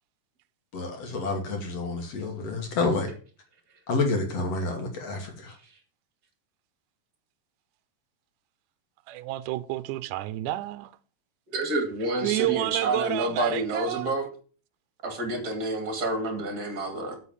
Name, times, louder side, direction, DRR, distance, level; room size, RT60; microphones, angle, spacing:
voice 1, 0.7-3.1 3.9-5.5, left 3 dB, 50° left, 2.5 m, -29 dB
voice 2, 9.1-10.9 12.2-14.1, right 15 dB, 80° right, 1.9 m, -30 dB
voice 3, 11.5-14.3 15.0-17.2, right 2 dB, 30° right, 2.2 m, -29 dB
8.2 x 5.7 x 7.1 m
omnidirectional pair, 4.1 m